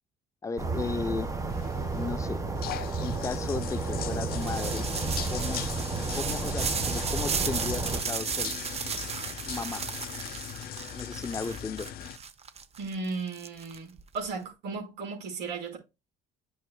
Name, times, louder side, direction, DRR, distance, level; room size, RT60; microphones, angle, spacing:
voice 1, 0.4-1.3 1.9-2.4 3.0-4.9 5.3-5.6 6.1-8.5 9.4-9.9 10.9-11.9, left 4 dB, 20° left, 0.6 m, -35 dB
sound 1, 0.6-8.0, right 3 dB, 20° right, 1.5 m, -32 dB
sound 2, 1.5-12.2, left 11 dB, 65° left, 0.7 m, -40 dB
sound 3, 4.3-14.2, right 6 dB, 40° right, 0.9 m, -35 dB
voice 2, 12.8-15.8, right 4 dB, 85° right, 4.7 m, -35 dB
11.0 x 6.3 x 2.2 m
cardioid pair, 110°, 17 cm